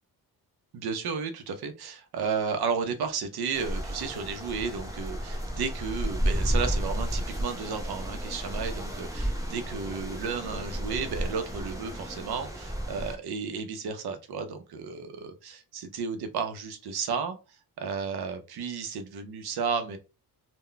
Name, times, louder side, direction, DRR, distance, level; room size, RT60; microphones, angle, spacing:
voice 1, 0.7-17.4 17.8-20.0, right 5 dB, 75° right, 8 dB, 0.6 m, -33 dB
sound 1, 3.5-13.2, equal, 10° right, 0.4 m, -32 dB
2.2 x 2.1 x 3.8 m, 0.30 s
wide cardioid pair, 175°, 39 cm